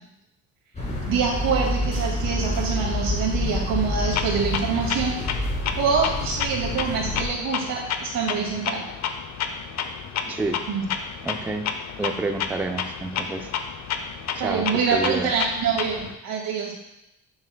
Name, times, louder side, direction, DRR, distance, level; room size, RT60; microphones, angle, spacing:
sound 1, 0.7-7.3, left 2 dB, 20° left, 2.2 m, -28 dB
voice 1, 1.1-5.2 5.7-8.8 10.7-10.9 14.4-16.7, right 6 dB, 90° right, -2 dB, 2.2 m, -25 dB
Clock, 4.1-16.1, left 7 dB, 55° left, 0.6 m, -31 dB
voice 2, 10.3-10.6 11.2-11.7 12.0-13.5 14.4-15.3, right 3 dB, 5° right, 5 dB, 0.3 m, -29 dB
8.9 x 7.1 x 2.2 m, 0.87 s
cardioid pair, 140°, 33 cm